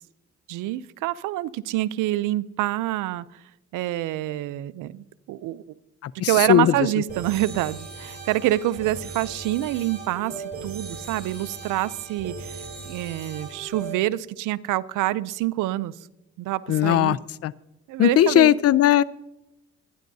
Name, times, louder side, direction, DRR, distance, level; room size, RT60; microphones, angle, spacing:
voice 1, 0.5-3.4 3.7-5.6 6.1-15.9 16.4-17.2 17.9-18.6, right 15 dB, 90° right, 17 dB, 0.5 m, -26 dB
voice 2, 6.0-6.7 16.7-17.2 17.4-17.5 18.0-19.0, left 12 dB, 55° left, 21 dB, 0.4 m, -18 dB
sound 1, 7.1-13.9, right 4 dB, 35° right, 5.6 m, -38 dB
24.0 x 10.0 x 2.7 m, 0.95 s
cardioid pair, 90°, 30 cm